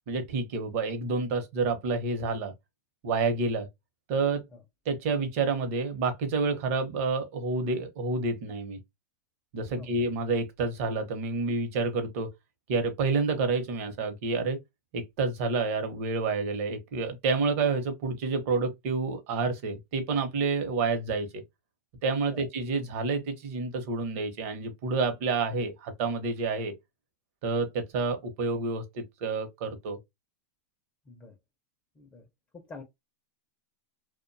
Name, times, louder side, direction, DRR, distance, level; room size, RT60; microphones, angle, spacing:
voice 1, 0.1-2.5 3.0-3.7 4.1-4.4 4.9-8.8 9.5-12.3 12.7-14.6 14.9-21.4 22.0-26.7 27.4-30.0, right 4 dB, 55° right, 0.8 m, -29 dB
voice 2, 31.1-31.4 32.0-32.3 32.5-32.8, left 4 dB, 20° left, 0.5 m, -46 dB
2.5 x 2.2 x 2.5 m
hypercardioid pair, 130°, 9 cm